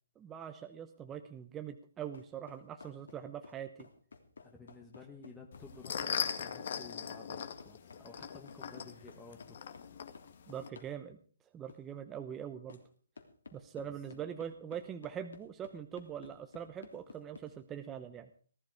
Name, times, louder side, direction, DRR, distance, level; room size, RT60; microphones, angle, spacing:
voice 1, 0.2-3.7 10.5-11.2 11.5-12.8 13.5-18.3, right 9 dB, 10° right, 7 dB, 0.8 m, -43 dB
sound 1, 2.1-10.4 10.8-11.0 11.7-11.8 12.7-12.9 13.2-17.5, left 4 dB, 85° left, 3.3 m, -54 dB
voice 2, 4.4-9.8 13.9-14.2, left 4 dB, 5° left, 0 dB, 1.4 m, -53 dB
sound 2, 5.5-10.7, left 7 dB, 50° left, 1.8 m, -40 dB
18.5 x 12.5 x 4.9 m, 0.43 s
hypercardioid pair, 170°, 0 cm